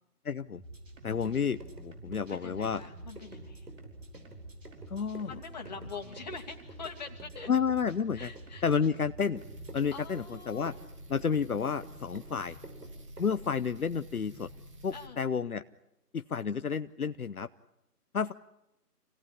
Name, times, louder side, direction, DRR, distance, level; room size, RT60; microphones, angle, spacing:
voice 1, 0.2-0.6 1.0-2.8 4.9-5.3 7.5-8.3 8.6-9.4 9.7-10.7 11.1-12.6 13.2-14.5 14.8-15.6 16.1-17.5 18.1-18.3, left 6 dB, 65° left, 12 dB, 0.8 m, -30 dB
sound 1, 0.5-9.8, right 2 dB, 55° right, 5.4 m, -48 dB
sound 2, 0.9-13.5, right 2 dB, 80° right, 6.0 m, -51 dB
voice 2, 2.3-3.7 5.3-7.5 8.1-8.6 9.9-10.8 14.9-15.2, left 5 dB, 25° left, 1 dB, 2.6 m, -44 dB
sound 3, 9.4-15.1, right 1 dB, 20° right, 2.1 m, -49 dB
28.0 x 17.5 x 9.9 m, 0.92 s
figure-of-eight pair, 160°, 46 cm